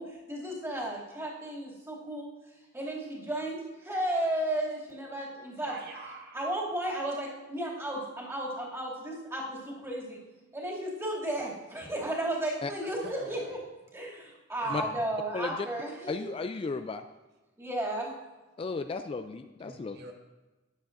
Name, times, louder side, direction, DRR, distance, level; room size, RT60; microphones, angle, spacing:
voice 1, 0.0-2.3 2.7-5.7 6.3-10.2 10.5-13.6 13.9-16.3 17.6-18.1, right 1 dB, 15° right, -5 dB, 2.5 m, -34 dB
voice 2, 5.7-6.4 12.8-13.5 14.6-15.0 19.6-20.1, right 2 dB, 55° right, 2 dB, 1.2 m, -46 dB
voice 3, 16.1-17.0 18.6-20.0, left 4 dB, 30° left, 9 dB, 0.3 m, -34 dB
13.5 x 10.0 x 2.6 m, 1.1 s
head